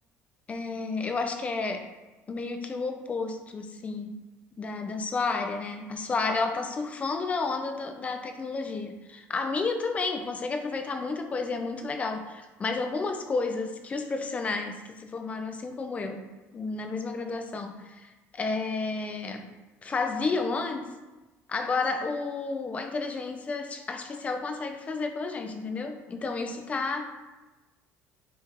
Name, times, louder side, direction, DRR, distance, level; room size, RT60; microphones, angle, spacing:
voice 1, 0.5-1.9 2.3-4.2 4.6-16.3 16.5-19.5 19.8-20.9 21.5-27.1, left 4 dB, 25° left, 6 dB, 0.7 m, -31 dB
10.0 x 3.5 x 3.0 m, 1.2 s
cardioid pair, 125°, 5 cm